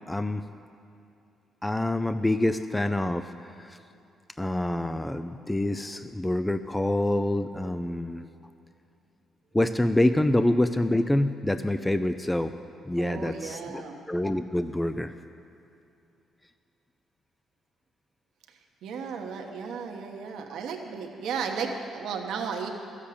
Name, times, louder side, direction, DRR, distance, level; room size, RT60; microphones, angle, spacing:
voice 1, 0.1-0.4 1.6-3.3 3.6-3.8 4.4-8.3 9.5-12.5 12.9-13.8 14.1-15.1, left 1 dB, 10° left, 10 dB, 0.4 m, -26 dB
voice 2, 13.0-14.0 18.8-22.7, right 6 dB, 80° right, 2 dB, 1.2 m, -34 dB
13.5 x 7.4 x 8.5 m, 2.7 s
cardioid pair, 90°, 0 cm